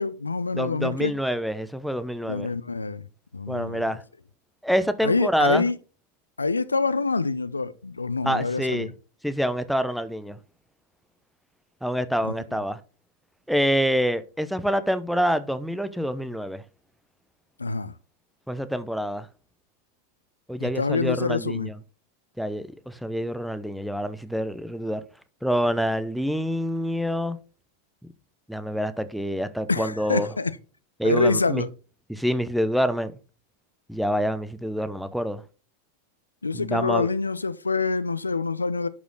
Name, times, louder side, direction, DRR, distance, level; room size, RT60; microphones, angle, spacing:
voice 1, 0.0-1.1 2.2-3.1 3.3-3.8 5.0-5.8 6.4-8.9 12.2-12.3 17.6-17.9 20.6-21.7 29.7-30.5 31.0-31.7 36.4-38.9, left 4 dB, 80° left, 0.5 m, -26 dB
voice 2, 0.6-2.5 3.5-4.0 4.6-5.6 8.2-8.9 9.2-10.4 11.8-12.8 13.5-16.6 18.5-19.3 20.5-21.8 22.4-25.0 25.4-27.4 28.5-30.3 31.0-31.6 32.1-33.1 33.9-35.4 36.5-37.1, equal, ahead, 0.7 m, -26 dB
11.0 x 5.1 x 3.8 m
figure-of-eight pair, 90°, 0 cm